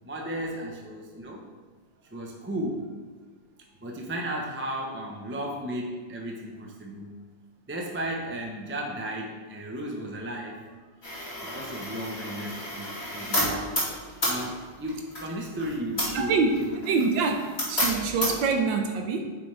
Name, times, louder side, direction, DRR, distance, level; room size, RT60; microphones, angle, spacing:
voice 1, 0.0-1.5 2.1-2.9 3.8-7.1 7.7-10.8 11.5-13.7 14.3-16.7, right 1 dB, 15° right, -1 dB, 0.5 m, -34 dB
sound 1, 11.0-18.5, equal, 35° left, 2.7 m, -32 dB
voice 2, 16.1-16.5 16.9-19.4, right 4 dB, 85° right, 4 dB, 1.5 m, -25 dB
9.5 x 6.2 x 3.4 m, 1.5 s
omnidirectional pair, 2.0 m